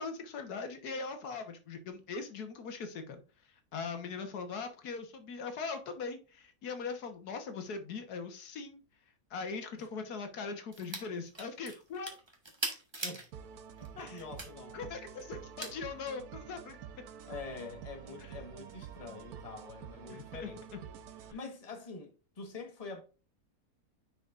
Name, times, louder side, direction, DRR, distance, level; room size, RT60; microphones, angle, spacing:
voice 1, 0.0-3.2 3.7-8.8 9.3-12.2 14.0-14.2 14.7-16.8 18.2-18.3 20.1-20.8 21.3-21.4, left 4 dB, 85° left, 1.7 m, -40 dB
sound 1, 10.7-11.1 11.3-13.3 13.8-14.5 15.6-15.7, right 2 dB, 20° right, 1.2 m, -39 dB
sound 2, 13.3-21.3, right 8 dB, 80° right, 1.2 m, -48 dB
voice 2, 13.8-14.8 17.3-20.8 21.3-23.0, left 4 dB, 25° left, 1.4 m, -45 dB
9.8 x 4.9 x 2.5 m
omnidirectional pair, 1.6 m